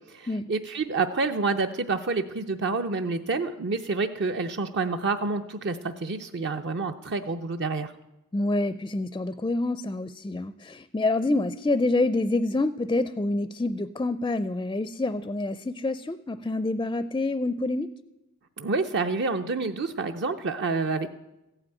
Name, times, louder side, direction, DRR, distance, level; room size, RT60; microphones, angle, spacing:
voice 1, 0.1-7.9 18.6-21.1, right 3 dB, 50° right, 7 dB, 0.6 m, -28 dB
voice 2, 8.3-17.9, left 2 dB, 15° left, 14 dB, 0.4 m, -27 dB
15.0 x 8.9 x 9.0 m, 0.98 s
head